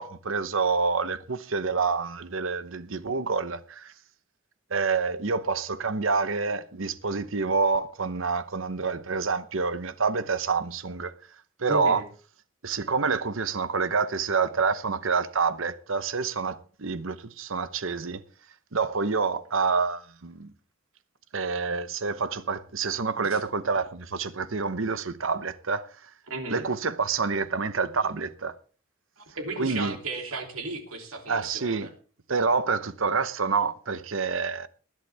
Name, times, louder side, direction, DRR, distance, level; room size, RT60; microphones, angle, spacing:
voice 1, 0.0-3.9 4.7-11.1 11.6-12.0 12.6-18.2 18.7-20.5 21.3-26.1 26.5-28.6 29.6-30.0 31.3-31.9 32.3-34.7, right 4 dB, 70° right, 0.9 m, -27 dB
voice 2, 11.7-12.0 23.3-23.4 26.3-26.6 29.2-31.9, right 2 dB, 90° right, 3.0 m, -35 dB
20.0 x 11.0 x 3.4 m
head